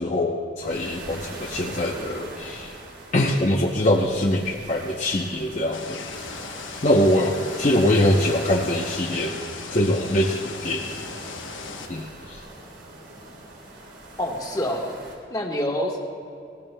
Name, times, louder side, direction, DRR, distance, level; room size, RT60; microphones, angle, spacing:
voice 1, 0.0-2.7 3.1-6.0 6.8-9.3 9.7-11.0 11.9-12.4, left 1 dB, 40° left, -2 dB, 0.7 m, -23 dB
sound 1, 0.6-15.1, right 1 dB, 75° right, 2.8 m, -41 dB
sound 2, 5.7-11.9, left 5 dB, 85° left, 1.0 m, -38 dB
voice 2, 14.2-14.9 15.3-16.0, left 1 dB, 20° left, 0 dB, 1.3 m, -26 dB
21.5 x 18.0 x 2.2 m, 2.6 s
head